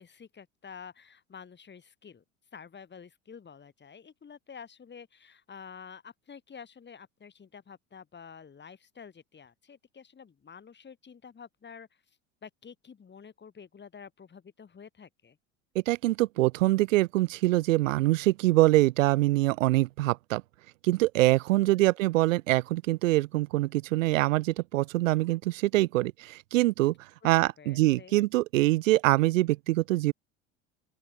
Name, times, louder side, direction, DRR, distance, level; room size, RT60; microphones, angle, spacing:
voice 1, 0.0-2.2 2.5-11.9 12.4-15.4 21.6-21.9 27.2-28.2, left 6 dB, 25° left, 4.6 m, -49 dB
voice 2, 15.7-20.4 20.8-26.9 27.2-30.1, right 18 dB, 75° right, 0.6 m, -24 dB
open air
hypercardioid pair, 75°, 39 cm